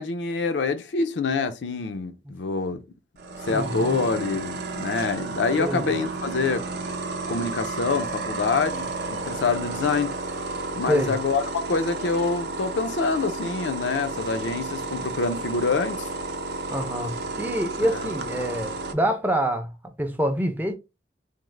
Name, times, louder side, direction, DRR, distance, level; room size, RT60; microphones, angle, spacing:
voice 1, 0.0-2.8 3.5-6.7 7.3-10.1 10.8-16.1 17.8-18.0, left 4 dB, 85° left, 0.5 m, -26 dB
sound 1, 3.2-18.9, right 3 dB, 65° right, 0.5 m, -32 dB
voice 2, 3.5-4.0 5.6-5.9 10.9-11.1 16.7-19.7 20.0-20.7, equal, 10° right, 0.4 m, -26 dB
3.5 x 2.0 x 3.1 m
head